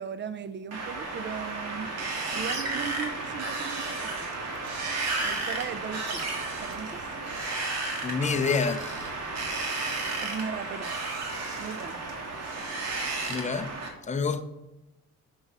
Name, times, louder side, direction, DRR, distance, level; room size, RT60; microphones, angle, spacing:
voice 1, 0.0-1.9 2.3-4.3 5.2-6.3 6.6-7.0 10.2-10.9 11.6-12.0, right 6 dB, 35° right, 13 dB, 0.6 m, -37 dB
Wind, 0.7-13.9, right 3 dB, 60° right, 1.6 m, -33 dB
voice 2, 8.0-9.1 13.3-13.7 14.1-14.4, left 5 dB, 25° left, 8 dB, 0.6 m, -28 dB
6.6 x 6.3 x 3.0 m, 0.96 s
cardioid pair, 90°, 30 cm